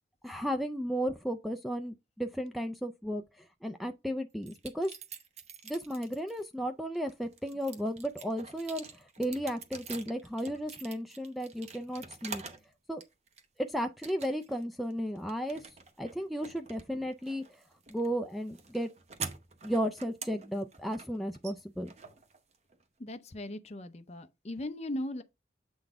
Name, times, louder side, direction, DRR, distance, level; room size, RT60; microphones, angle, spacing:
voice 1, 0.2-4.9 5.6-12.4 12.9-13.0 13.6-15.6 16.0-17.6 17.9-18.9 19.6-21.9, equal, ahead, 0.3 m, -34 dB
sound 1, 4.4-6.4 6.9-12.7 13.0-13.6 14.0-14.6 14.9-22.8, right 5 dB, 35° right, 0.8 m, -46 dB
voice 2, 23.0-25.2, left 1 dB, 35° left, 0.6 m, -38 dB
7.8 x 3.9 x 3.5 m
head